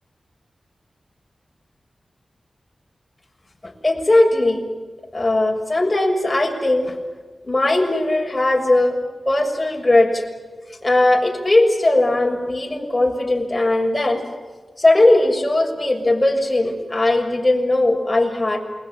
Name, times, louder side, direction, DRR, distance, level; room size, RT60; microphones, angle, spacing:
voice 1, 3.6-4.6 5.1-7.0 7.4-9.0 9.2-10.2 10.8-14.2 14.8-18.6, left 2 dB, 25° left, 1 dB, 6.6 m, -18 dB
28.5 x 22.0 x 7.6 m, 1.4 s
cardioid pair, 55°, 0 cm